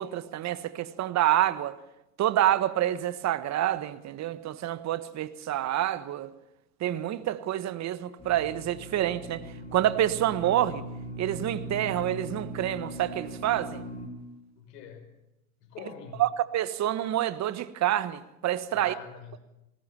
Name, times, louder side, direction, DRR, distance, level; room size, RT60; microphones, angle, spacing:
voice 1, 0.0-1.8 2.2-6.3 6.8-9.4 9.7-10.8 11.2-13.8 16.2-18.9, right 12 dB, 35° right, 1.4 m, -27 dB
sound 1, 8.2-14.1, right 1 dB, 15° left, 5.0 m, -40 dB
voice 2, 14.6-15.3 15.6-16.3 18.7-19.4, left 7 dB, 65° left, 6.0 m, -45 dB
21.0 x 19.0 x 7.1 m
hypercardioid pair, 110°, 49 cm